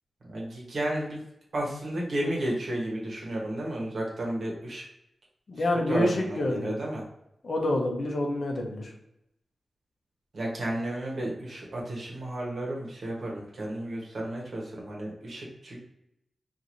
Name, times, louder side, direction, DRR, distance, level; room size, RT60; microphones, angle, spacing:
voice 1, 0.2-1.2 1.5-4.8 5.6-7.0 10.3-15.8, right 1 dB, 60° right, -3 dB, 1.0 m, -32 dB
voice 2, 5.5-6.7 7.4-8.9, left 1 dB, 55° left, 0 dB, 0.6 m, -27 dB
3.0 x 2.6 x 2.6 m, 0.81 s
wide cardioid pair, 125°, 0 cm